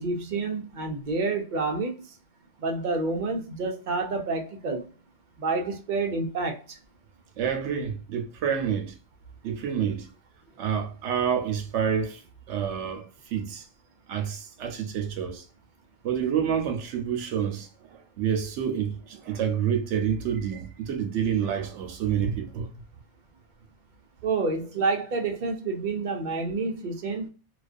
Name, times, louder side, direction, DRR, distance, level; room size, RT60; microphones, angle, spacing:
voice 1, 0.0-2.0 2.6-4.9 5.4-6.8 24.2-27.3, right 3 dB, 55° right, 0.6 m, -28 dB
voice 2, 7.4-8.9 9.4-10.1 10.6-12.2 12.5-13.6 14.1-15.4 16.0-22.7, right 8 dB, 85° right, 0.9 m, -28 dB
2.3 x 2.3 x 2.4 m
omnidirectional pair, 1.2 m